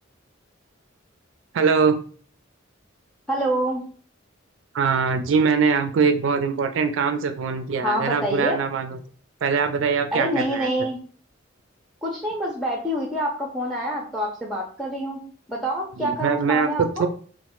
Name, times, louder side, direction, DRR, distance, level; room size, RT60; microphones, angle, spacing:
voice 1, 1.5-2.0 4.7-9.0 9.4-10.7 16.0-17.1, right 5 dB, 70° right, 8 dB, 0.3 m, -22 dB
voice 2, 3.3-3.8 7.8-8.6 10.1-11.0 12.0-15.2 15.5-17.0, right 1 dB, ahead, 0 dB, 0.4 m, -26 dB
3.0 x 2.0 x 2.9 m, 0.43 s
head